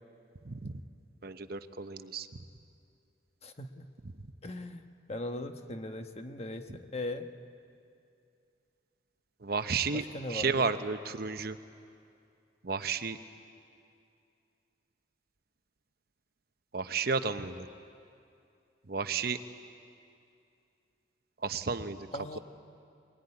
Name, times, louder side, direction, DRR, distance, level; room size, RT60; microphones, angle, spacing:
voice 1, 0.4-0.8 1.2-2.3 9.4-11.6 12.6-13.2 16.7-17.7 18.9-19.4 21.4-22.1, right 5 dB, 55° right, 10 dB, 0.8 m, -32 dB
voice 2, 3.4-3.9 4.4-7.3 9.9-10.7 22.1-22.4, left 2 dB, 35° left, 6 dB, 1.1 m, -39 dB
22.5 x 21.0 x 9.7 m, 2.5 s
head